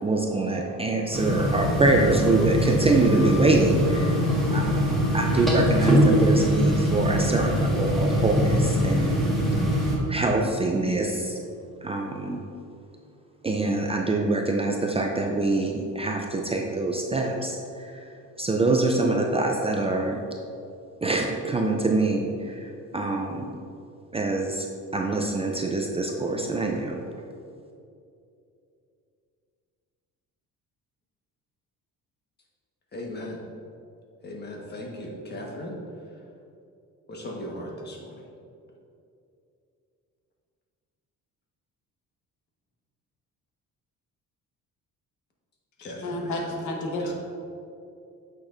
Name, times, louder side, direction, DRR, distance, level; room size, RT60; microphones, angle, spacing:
voice 1, 0.0-9.3 10.1-11.4 11.8-12.4 13.4-17.9 18.4-20.2 21.0-23.5 24.1-24.7 24.9-27.0, right 2 dB, 20° right, 1 dB, 0.4 m, -25 dB
sound 1, 1.1-10.0, equal, ahead, 1.6 m, -22 dB
voice 2, 32.9-33.4 34.2-35.8 37.1-38.2 45.8-46.7 47.0-47.1, left 1 dB, 30° left, -1 dB, 1.4 m, -37 dB
voice 3, 45.8-47.1, left 1 dB, 65° left, 0 dB, 1.2 m, -31 dB
8.3 x 6.2 x 2.6 m, 2.6 s
cardioid pair, 115°, 32 cm